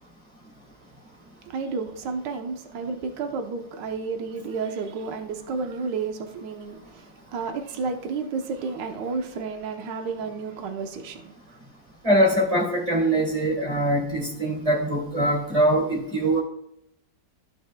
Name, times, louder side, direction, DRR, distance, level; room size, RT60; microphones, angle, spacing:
voice 1, 1.1-11.6, right 4 dB, 75° right, 1.5 m, -32 dB
voice 2, 12.0-16.4, right 1 dB, 20° right, 2.4 m, -22 dB
15.0 x 5.3 x 2.2 m
omnidirectional pair, 1.9 m